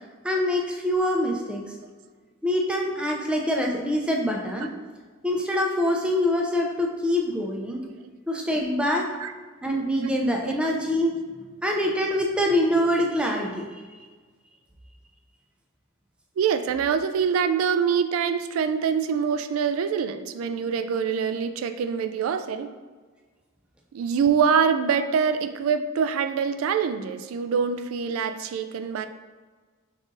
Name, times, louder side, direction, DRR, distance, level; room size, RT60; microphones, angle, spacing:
voice 1, 0.2-1.6 2.4-4.7 5.2-7.8 8.3-9.1 9.6-11.1 11.6-13.7, left 1 dB, 5° right, -1 dB, 0.5 m, -24 dB
voice 2, 16.4-22.7 23.9-29.1, right 6 dB, 85° right, 9 dB, 0.3 m, -25 dB
5.3 x 3.6 x 2.6 m, 1.5 s
head